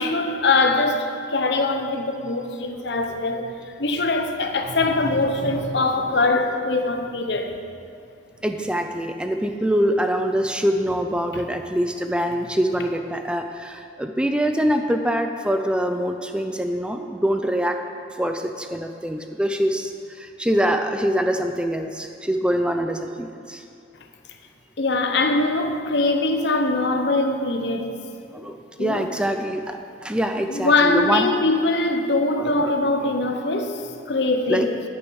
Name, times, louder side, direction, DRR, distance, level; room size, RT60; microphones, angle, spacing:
voice 1, 0.0-3.5 3.8-7.5 11.3-11.4 24.8-28.0 28.8-29.0 30.5-34.8, left 2 dB, 70° left, 1.0 m, -22 dB
voice 2, 8.4-17.8 18.2-23.6 28.3-31.3 32.4-33.1 34.5-34.7, equal, 5° right, 0.4 m, -24 dB
9.8 x 9.0 x 6.3 m
head